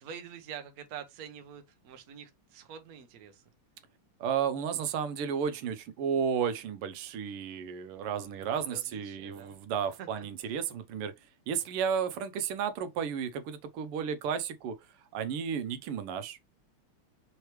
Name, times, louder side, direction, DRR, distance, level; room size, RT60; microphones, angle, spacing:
voice 1, 0.0-3.4 8.7-9.5 10.0-10.2, right 8 dB, 60° right, 1.0 m, -46 dB
voice 2, 4.2-11.1 11.5-14.8 15.1-16.4, right 7 dB, 90° right, 1.7 m, -33 dB
5.5 x 3.2 x 3.0 m
omnidirectional pair, 2.4 m